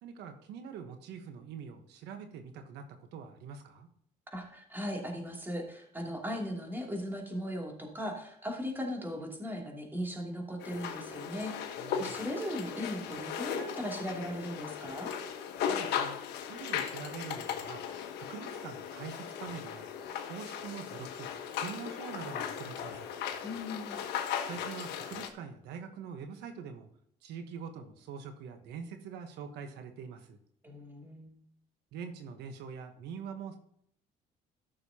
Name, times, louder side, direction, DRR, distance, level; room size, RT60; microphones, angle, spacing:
voice 1, 0.0-3.9 11.8-12.2 15.7-16.2 16.5-17.8 18.2-19.9 20.2-23.1 24.4-26.9 27.2-30.4 31.9-33.6, right 6 dB, 85° right, 6 dB, 1.2 m, -44 dB
voice 2, 4.3-11.7 12.0-15.1 23.4-24.0 30.6-31.3, equal, 10° right, 0 dB, 2.8 m, -38 dB
sound 1, 10.6-25.3, left 8 dB, 80° left, 1.3 m, -37 dB
14.0 x 6.6 x 2.9 m, 0.69 s
cardioid pair, 110°, 17 cm